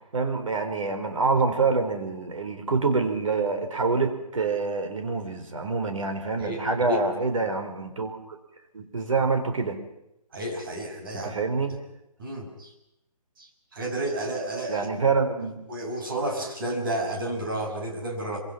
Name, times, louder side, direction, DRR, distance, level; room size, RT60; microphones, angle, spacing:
voice 1, 0.0-8.4 8.7-9.8 11.2-11.7 14.7-15.6, right 4 dB, 55° right, 6 dB, 4.5 m, -26 dB
voice 2, 6.4-7.0 10.3-11.3 12.2-12.7 13.4-14.9 15.7-18.4, right 1 dB, 35° right, 1 dB, 5.9 m, -31 dB
25.5 x 25.0 x 5.9 m, 0.85 s
hypercardioid pair, 175°, 20 cm